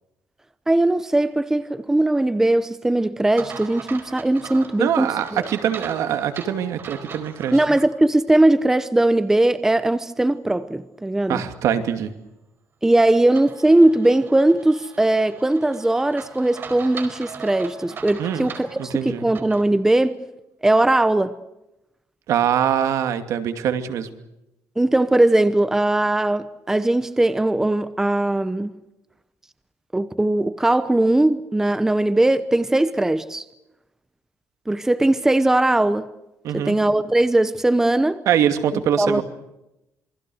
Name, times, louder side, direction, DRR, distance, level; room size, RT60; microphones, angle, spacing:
voice 1, 0.7-5.1 5.3-5.5 7.5-11.4 12.8-20.2 20.6-21.4 24.8-28.7 29.9-33.4 34.7-36.1 36.5-38.2 39.0-39.2, right 1 dB, 10° right, 0.9 m, -19 dB
sound 1, 3.4-7.9 8.3-8.4 13.4-19.7, right 5 dB, 40° right, 4.5 m, -39 dB
voice 2, 4.8-7.6 11.3-12.1 18.2-18.5 18.8-19.3 22.3-24.1 36.4-36.8 38.3-39.2, right 9 dB, 70° right, 2.6 m, -23 dB
27.5 x 23.0 x 6.4 m
cardioid pair, 140°, 6 cm